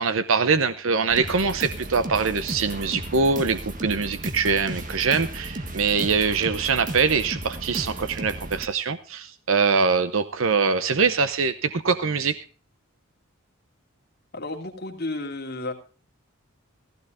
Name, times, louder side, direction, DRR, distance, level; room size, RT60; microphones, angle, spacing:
voice 1, 0.0-12.4, right 5 dB, 65° right, 11 dB, 0.8 m, -23 dB
sound 1, 1.1-8.7, right 1 dB, 40° right, 1.7 m, -34 dB
voice 2, 14.3-15.7, left 2 dB, 45° left, 2 dB, 2.7 m, -32 dB
17.0 x 15.5 x 2.6 m, 0.36 s
head